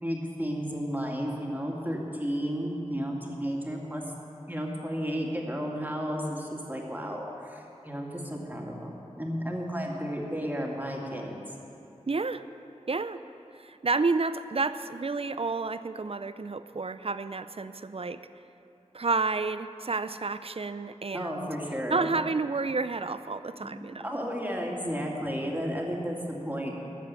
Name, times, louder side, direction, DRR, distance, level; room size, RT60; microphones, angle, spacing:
voice 1, 0.0-4.0 4.5-11.4 21.1-22.2 23.6-23.7 24.0-26.8, equal, 15° right, -1 dB, 2.2 m, -33 dB
voice 2, 12.1-12.4 12.9-13.2 13.5-18.2 18.9-21.5 21.9-24.0, right 3 dB, 55° right, 12 dB, 0.5 m, -30 dB
14.0 x 7.4 x 9.4 m, 2.7 s
wide cardioid pair, 50°, 12 cm